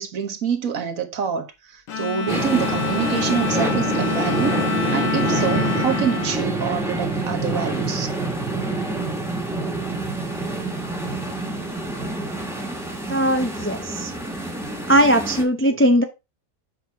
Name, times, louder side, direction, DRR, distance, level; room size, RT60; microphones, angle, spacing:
voice 1, 0.0-1.5 1.7-4.6 4.9-8.1, right 7 dB, 65° right, 1.5 m, -26 dB
Bowed string instrument, 1.9-7.4, left 7 dB, 65° left, 1.3 m, -27 dB
sound 1, 2.3-15.4, right 2 dB, ahead, 1.4 m, -26 dB
voice 2, 13.1-14.1 14.9-16.0, equal, 15° left, 0.4 m, -19 dB
7.2 x 6.0 x 3.5 m
omnidirectional pair, 1.6 m